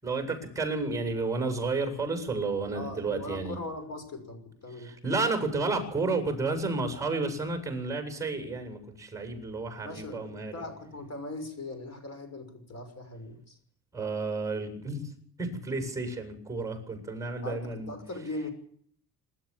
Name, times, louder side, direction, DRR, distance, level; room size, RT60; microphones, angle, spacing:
voice 1, 0.0-3.6 4.8-10.6 13.9-15.1 15.4-17.9, right 3 dB, 10° right, 6 dB, 7.6 m, -31 dB
voice 2, 2.7-4.9 9.8-13.6 17.4-18.5, left 2 dB, 40° left, 8 dB, 5.9 m, -40 dB
27.0 x 13.5 x 7.4 m, 0.64 s
cardioid pair, 95°, 38 cm